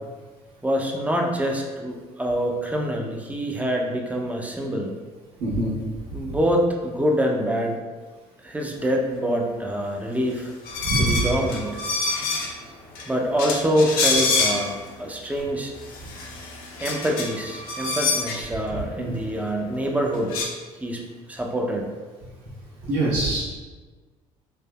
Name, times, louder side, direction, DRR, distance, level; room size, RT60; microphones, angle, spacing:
voice 1, 0.6-4.9 6.1-7.8 8.4-10.5 11.0-11.8 13.1-15.7 16.8-20.3 20.8-21.0 21.3-21.9, equal, 10° right, 1 dB, 0.5 m, -25 dB
voice 2, 5.4-5.7 6.3-6.4 10.8-11.3 18.7-19.2 22.9-23.4, right 2 dB, 75° right, -10 dB, 1.1 m, -24 dB
sound 1, 10.6-12.6 12.9-13.1 13.4-14.9 15.4-15.5 15.8-18.4 19.8-19.9 20.1-20.5, left 3 dB, 75° left, 0.5 m, -26 dB
3.3 x 2.1 x 2.2 m, 1.3 s
supercardioid pair, 75°, 15 cm